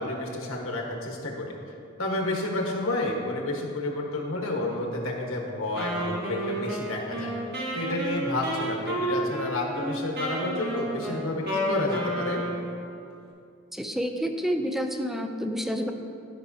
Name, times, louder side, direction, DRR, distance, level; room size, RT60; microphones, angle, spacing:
voice 1, 0.0-1.5 2.0-7.3 7.7-12.4, left 2 dB, 90° left, -1 dB, 1.3 m, -30 dB
Wind instrument woodwind instrument, 5.8-12.9, right 1 dB, 55° right, 1.4 m, -31 dB
voice 2, 13.7-15.9, equal, ahead, 5 dB, 0.4 m, -29 dB
13.0 x 5.5 x 2.8 m, 2.6 s
head